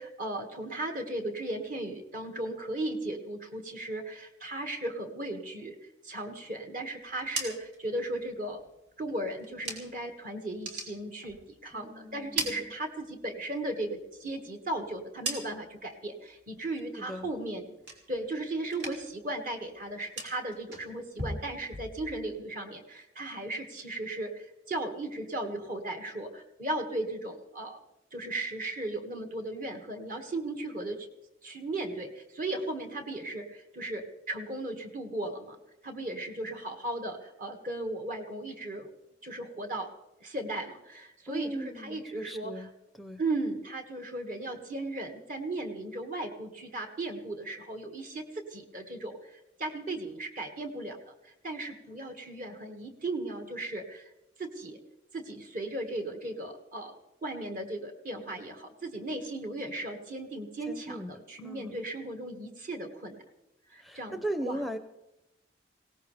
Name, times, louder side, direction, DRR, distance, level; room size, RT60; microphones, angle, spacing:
voice 1, 0.0-5.8 6.0-8.6 9.0-17.7 18.1-27.8 28.1-31.1 31.4-35.6 35.8-38.9 39.2-39.9 40.2-42.7 43.2-54.1 54.4-54.8 55.1-63.2 63.7-64.6, right 2 dB, 50° right, 4 dB, 2.0 m, -36 dB
sound 1, 7.0-10.1 10.5-11.8 12.1-13.4 13.7-15.9 16.3-16.7 17.1-18.4 18.6-19.3 19.5-22.4, right 2 dB, 80° right, 3.2 m, -40 dB
voice 2, 11.7-12.7 17.0-17.3 41.3-42.7 43.0-43.2 60.7-61.1 61.4-61.8 63.8-64.8, right 1 dB, ahead, 8 dB, 0.6 m, -38 dB
21.0 x 18.0 x 3.4 m, 0.90 s
head